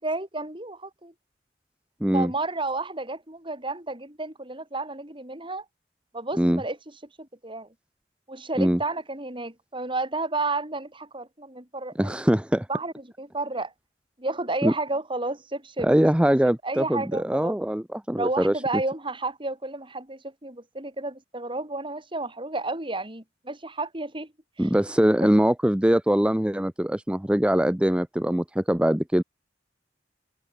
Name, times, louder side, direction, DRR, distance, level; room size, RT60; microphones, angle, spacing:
voice 1, 0.0-1.1 2.1-5.6 6.1-6.8 7.2-7.7 8.3-12.2 12.7-13.7 14.2-16.0 16.4-17.6 18.2-24.3 24.6-24.7, right 2 dB, 30° right, 6.4 m, -31 dB
voice 2, 2.0-2.3 6.4-6.6 8.6-8.8 12.0-12.7 14.6-14.7 15.8-18.8 24.6-29.2, equal, 5° right, 0.6 m, -22 dB
head